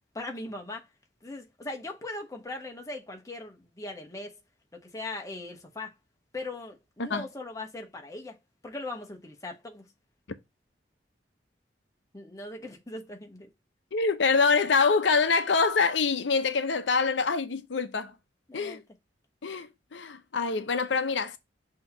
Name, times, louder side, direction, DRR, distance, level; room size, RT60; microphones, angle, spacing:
voice 1, 0.1-0.9 1.2-4.4 4.7-5.9 6.3-8.4 8.6-9.9 12.1-13.5 18.5-18.8, left 2 dB, 20° left, 1.0 m, -39 dB
voice 2, 13.9-18.1 18.5-18.8 19.4-21.4, left 4 dB, 75° left, 0.6 m, -25 dB
6.4 x 2.9 x 5.4 m
head